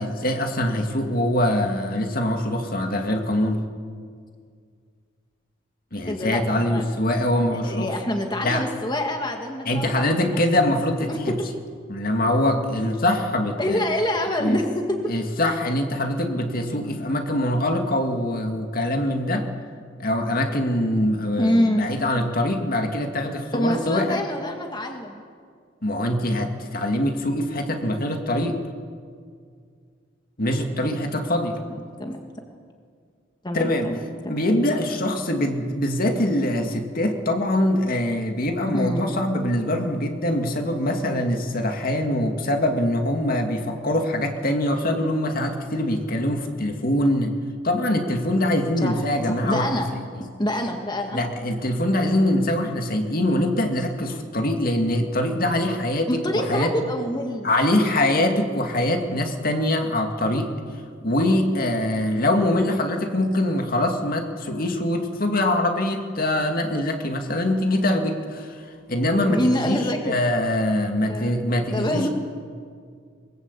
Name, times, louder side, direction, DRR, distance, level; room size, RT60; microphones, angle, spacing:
voice 1, 0.0-3.6 5.9-7.9 8.4-8.6 9.7-11.3 11.9-13.8 14.4-14.6 15.1-19.5 20.0-24.2 25.8-28.6 30.4-31.6 33.5-33.9 34.3-47.3 47.6-50.3 51.1-56.8 57.4-60.5 61.0-69.8 70.1-72.1, left 1 dB, 50° left, 4 dB, 2.2 m, -23 dB
voice 2, 6.1-6.9 7.5-10.4 11.1-11.5 13.6-15.0 21.4-21.9 23.5-25.2 31.6-32.2 33.4-34.0 34.2-34.3 38.7-39.1 48.8-49.9 50.2-51.2 54.0-54.2 56.1-57.5 62.1-62.3 69.3-70.2 71.1-72.1, left 1 dB, 25° left, 3 dB, 1.8 m, -26 dB
22.0 x 22.0 x 8.3 m, 2.1 s
head